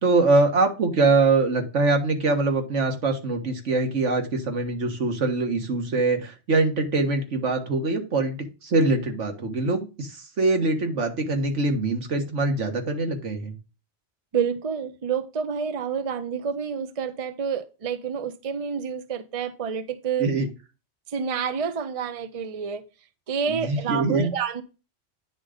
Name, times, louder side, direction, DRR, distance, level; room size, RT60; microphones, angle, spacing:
voice 1, 0.0-13.5 20.2-20.5 23.5-24.3, right 3 dB, 85° right, 1.8 m, -23 dB
voice 2, 14.3-20.3 21.1-22.8 23.3-24.6, right 6 dB, 35° right, 0.7 m, -28 dB
9.3 x 3.9 x 4.9 m
omnidirectional pair, 1.2 m